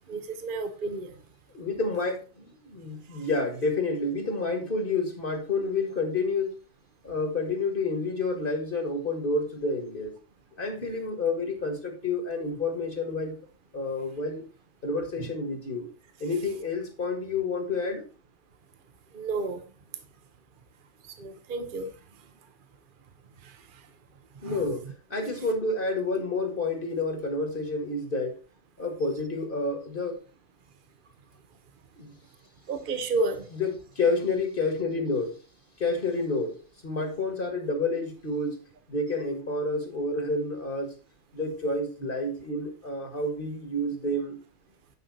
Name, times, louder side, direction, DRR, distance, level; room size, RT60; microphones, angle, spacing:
voice 1, 0.1-1.2 19.1-19.6 21.2-21.9 24.4-24.6 32.7-33.4, right 3 dB, 45° right, 1.1 m, -31 dB
voice 2, 1.5-6.5 7.0-10.1 10.6-13.4 13.7-14.4 14.8-15.9 16.2-18.0 24.4-28.4 28.8-30.2 32.0-32.1 33.5-33.7 34.0-35.4 35.8-36.6 36.8-38.6 38.9-40.9 41.3-44.4, left 3 dB, 45° left, 2.0 m, -29 dB
9.4 x 5.7 x 4.1 m
omnidirectional pair, 1.3 m